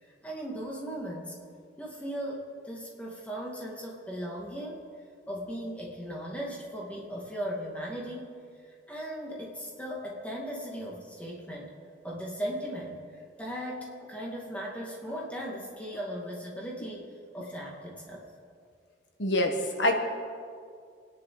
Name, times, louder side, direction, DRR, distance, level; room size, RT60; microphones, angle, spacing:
voice 1, 0.0-1.4 1.8-4.8 5.3-8.4 8.7-11.7 12.0-17.1 17.3-18.2, equal, 10° left, -3 dB, 2.4 m, -37 dB
voice 2, 19.2-19.9, left 1 dB, 80° left, 4 dB, 1.5 m, -25 dB
28.0 x 10.5 x 4.0 m, 2.2 s
head